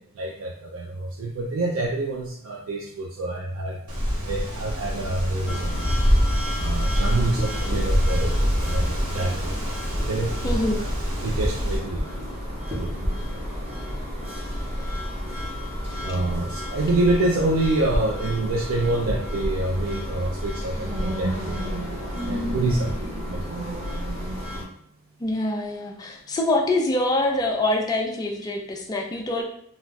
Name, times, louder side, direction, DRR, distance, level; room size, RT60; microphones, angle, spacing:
voice 1, 0.2-3.8 4.2-5.9 6.6-9.6 10.0-10.5 10.8-10.9 11.2-12.0 12.8-12.9 16.0-21.8 22.3-22.9 23.3-23.4, right 2 dB, 65° right, 0 dB, 0.3 m, -27 dB
Wind, 3.9-11.8, equal, 85° right, 1.0 m, -25 dB
sound 1, 5.5-24.6, equal, 30° right, 0.8 m, -30 dB
voice 2, 10.4-10.8 25.2-29.4, left 2 dB, 15° left, 1 dB, 0.3 m, -25 dB
2.3 x 2.2 x 3.8 m, 0.68 s
head